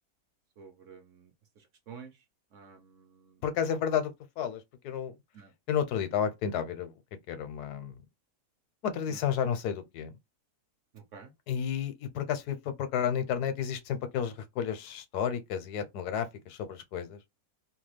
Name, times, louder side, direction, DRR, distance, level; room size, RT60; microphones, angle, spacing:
voice 1, 0.6-1.3 1.6-2.1 2.5-3.4 5.3-5.5 9.1-9.3 10.9-11.3, right 6 dB, 60° right, 1.0 m, -50 dB
voice 2, 3.4-5.1 5.7-6.9 7.3-8.0 8.8-10.1 11.5-17.2, left 8 dB, 90° left, 1.2 m, -32 dB
2.9 x 2.3 x 3.2 m
omnidirectional pair, 1.6 m